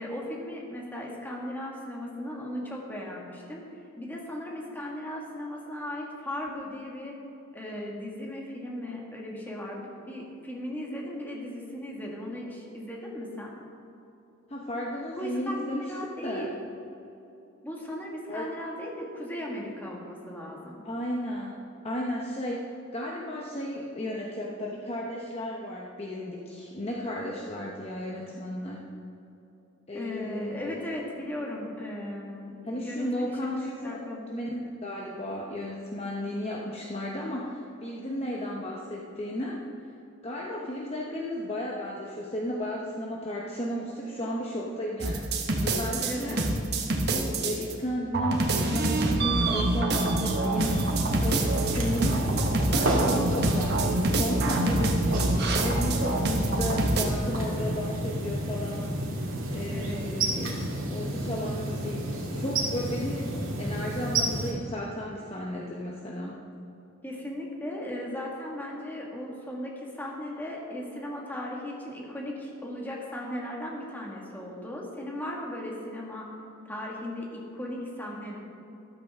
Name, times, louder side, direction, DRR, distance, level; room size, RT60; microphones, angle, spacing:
voice 1, 0.0-7.2 7.5-13.5 15.2-15.5 15.8-16.5 17.6-20.8 29.9-34.2 46.0-46.3 59.7-60.0 67.0-76.3 76.7-78.4, left 1 dB, 10° left, -3 dB, 1.9 m, -37 dB
voice 2, 14.5-15.9 16.2-16.5 18.3-18.5 20.8-21.6 21.8-28.8 29.9-30.8 32.6-39.6 40.2-45.3 45.6-46.4 47.1-50.8 51.2-52.3 52.7-55.2 55.6-59.1 59.5-60.6 60.9-63.3 63.6-66.4, equal, 30° left, -2 dB, 1.0 m, -34 dB
sound 1, 45.0-47.7 48.1-57.1, right 2 dB, 50° right, 1.3 m, -26 dB
sound 2, 50.6-64.5, right 1 dB, 70° right, 2.3 m, -31 dB
13.5 x 12.5 x 3.7 m, 2.9 s
head